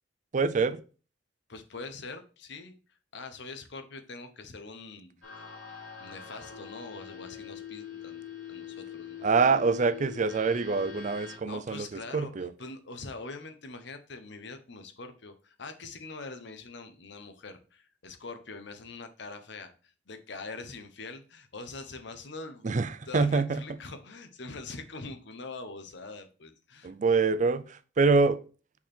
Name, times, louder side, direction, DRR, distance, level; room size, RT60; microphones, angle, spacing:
voice 1, 0.3-0.8 9.2-12.5 22.6-23.6 26.8-28.4, right 4 dB, 40° right, 13 dB, 0.4 m, -25 dB
voice 2, 1.5-5.2 6.0-9.3 11.5-22.7 23.1-26.9, left 3 dB, 65° left, 8 dB, 0.9 m, -43 dB
sound 1, 5.2-11.4, left 8 dB, 90° left, 2.5 m, -43 dB
5.8 x 4.4 x 4.3 m, 0.36 s
head